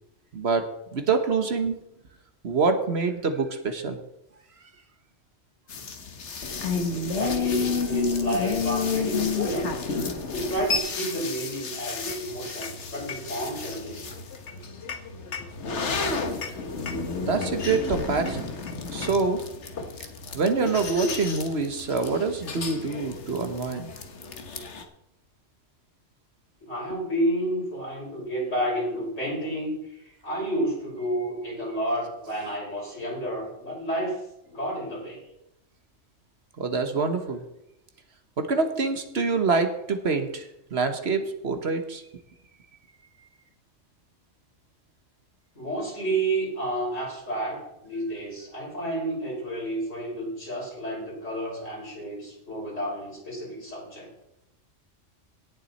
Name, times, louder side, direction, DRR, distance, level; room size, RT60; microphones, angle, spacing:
voice 1, 0.3-0.7 0.9-1.8 2.4-4.0 17.2-18.5 18.9-19.4 20.3-23.9 36.6-37.4 38.4-42.0, right 4 dB, 60° right, 7 dB, 1.4 m, -26 dB
sound 1, 5.7-24.8, left 4 dB, 65° left, 1.5 m, -31 dB
voice 2, 6.9-9.8 10.3-14.2 26.6-35.2 45.5-54.1, right 1 dB, 80° left, -5 dB, 6.3 m, -30 dB
17.5 x 7.4 x 4.1 m, 0.84 s
omnidirectional pair, 1.3 m